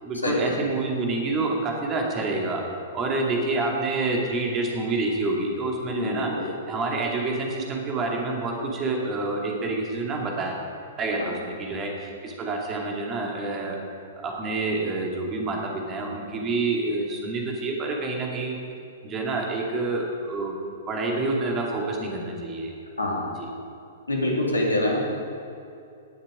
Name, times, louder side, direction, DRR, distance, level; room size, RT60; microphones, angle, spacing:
voice 1, 0.0-2.6 2.9-6.3 6.7-10.7 11.0-13.8 14.2-18.6 19.0-20.5 20.9-22.7 23.4-23.5, right 3 dB, 25° right, 0 dB, 2.3 m, -28 dB
voice 2, 5.9-6.4 23.0-23.3 24.1-25.1, left 1 dB, 80° left, -1 dB, 2.4 m, -25 dB
18.0 x 7.3 x 5.0 m, 2.6 s
figure-of-eight pair, 110°, 0 cm